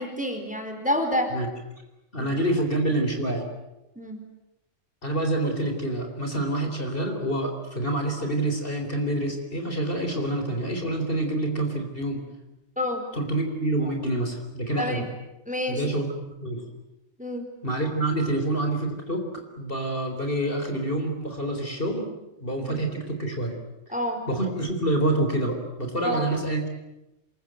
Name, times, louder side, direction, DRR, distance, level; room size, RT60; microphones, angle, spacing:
voice 1, 0.0-1.3 2.2-2.3 4.0-4.2 12.8-13.0 14.8-15.1 15.5-15.8 17.2-17.5 22.7-22.8 23.9-24.2 26.0-26.2, equal, 5° right, 4 dB, 4.3 m, -28 dB
voice 2, 2.1-3.5 5.0-12.2 13.1-15.0 15.7-16.6 17.6-22.1 22.4-23.6 24.3-26.7, right 1 dB, 45° left, 4 dB, 4.4 m, -27 dB
27.5 x 23.0 x 9.1 m, 0.95 s
omnidirectional pair, 1.3 m